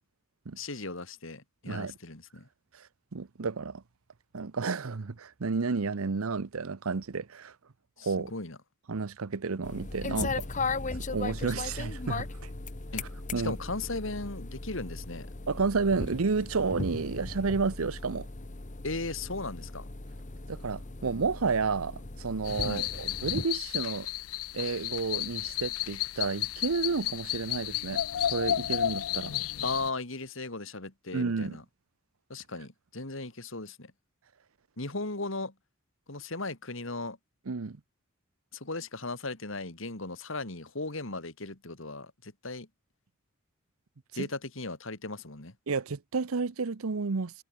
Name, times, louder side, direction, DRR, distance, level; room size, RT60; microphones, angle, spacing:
voice 1, 0.6-2.5 8.0-8.6 12.9-13.0 13.4-15.3 18.8-19.9 22.6-22.9 29.6-31.6 32.3-33.9 34.8-35.5 36.1-37.2 38.5-42.7 44.1-45.5, left 3 dB, 60° left, 2.8 m, -37 dB
voice 2, 3.1-3.8 4.3-7.5 8.0-8.3 8.9-10.5 11.1-12.3 13.3-13.6 15.5-18.3 20.5-24.1 24.5-28.0 28.3-29.3 31.1-31.6 37.5-37.8 44.2-44.3 45.7-47.3, right 4 dB, 80° right, 0.8 m, -31 dB
sound 1, 9.6-23.4, left 3 dB, 35° left, 1.2 m, -37 dB
sound 2, 22.5-29.9, left 12 dB, 85° left, 0.5 m, -32 dB
head